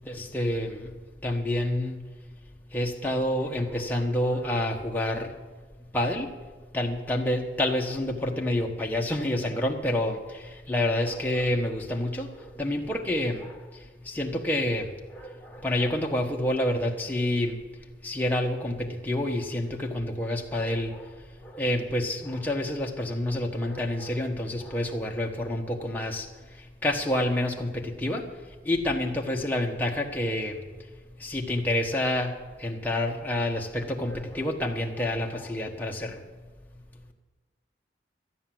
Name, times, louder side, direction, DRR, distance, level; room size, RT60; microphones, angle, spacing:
voice 1, 0.0-0.9 1.2-2.0 2.7-5.3 5.9-6.3 6.7-17.6 18.0-28.3 28.6-30.6 31.2-36.3, left 1 dB, 10° left, 0 dB, 1.2 m, -28 dB
13.5 x 9.5 x 7.6 m, 1.3 s
head